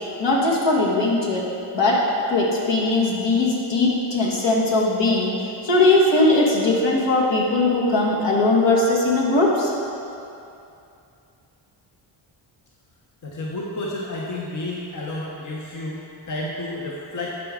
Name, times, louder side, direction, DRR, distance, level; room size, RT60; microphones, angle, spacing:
voice 1, 0.2-1.4 1.7-5.4 5.6-9.7, left 2 dB, 60° left, -4 dB, 1.7 m, -19 dB
voice 2, 13.2-17.4, left 2 dB, 40° left, -3 dB, 1.0 m, -31 dB
10.5 x 4.8 x 3.8 m, 2.6 s
cardioid pair, 75°, 47 cm